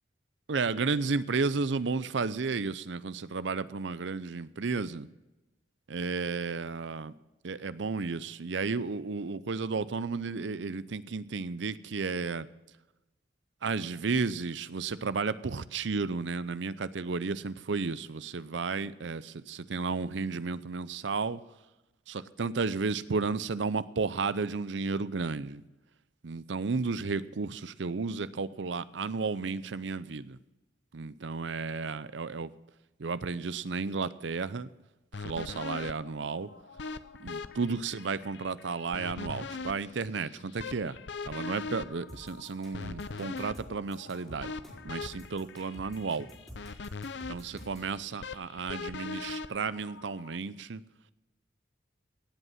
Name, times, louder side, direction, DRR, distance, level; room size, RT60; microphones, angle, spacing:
voice 1, 0.5-5.1 5.9-7.1 7.4-12.5 13.6-21.4 22.1-25.6 26.2-30.4 30.9-32.5 33.0-34.7 35.2-36.5 37.2-41.0 41.3-44.5 44.8-46.3 47.3-50.8, right 4 dB, 70° right, 16 dB, 0.6 m, -33 dB
sound 1, 35.1-50.4, left 4 dB, 65° left, 0.6 m, -42 dB
sound 2, 42.1-47.9, equal, ahead, 5.0 m, -48 dB
17.5 x 8.2 x 5.8 m, 1.0 s
head